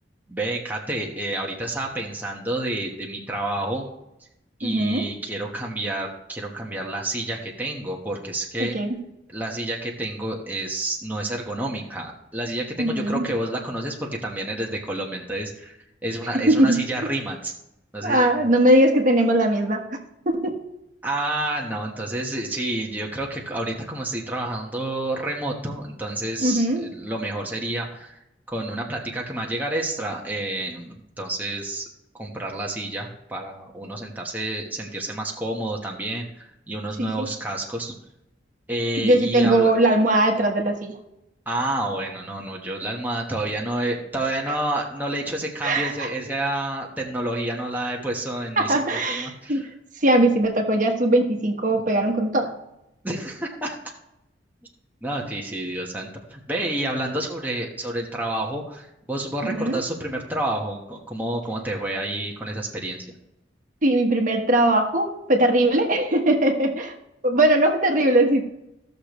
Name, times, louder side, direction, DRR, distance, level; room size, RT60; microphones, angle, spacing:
voice 1, 0.3-3.9 4.6-8.8 9.3-15.8 16.0-17.5 17.9-18.3 21.0-28.2 28.5-31.8 32.1-37.9 38.7-39.7 41.5-49.7 53.0-53.8 55.0-63.1, right 1 dB, 10° right, -1 dB, 1.2 m, -29 dB
voice 2, 4.6-5.1 8.6-9.0 12.8-13.2 16.3-16.8 18.0-19.8 20.2-20.6 26.4-26.9 37.0-37.3 39.0-41.0 45.6-46.1 48.6-49.7 50.0-52.5 59.4-59.8 63.8-66.9 67.2-68.4, right 1 dB, 45° right, 2 dB, 1.3 m, -20 dB
16.0 x 6.7 x 3.1 m, 0.86 s
head